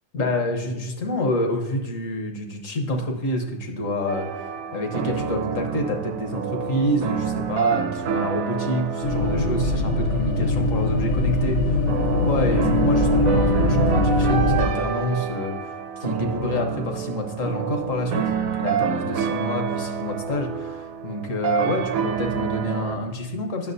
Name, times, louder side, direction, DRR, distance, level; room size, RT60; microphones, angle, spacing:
voice 1, 0.1-4.3 4.7-11.8 12.1-15.7 16.0-23.7, left 1 dB, 70° left, 4 dB, 1.4 m, -27 dB
sound 1, 4.1-23.0, right 7 dB, 80° right, 1.1 m, -28 dB
sound 2, 9.0-14.6, left 1 dB, 85° left, 1.3 m, -21 dB
8.6 x 6.9 x 2.6 m, 1.1 s
omnidirectional pair, 1.5 m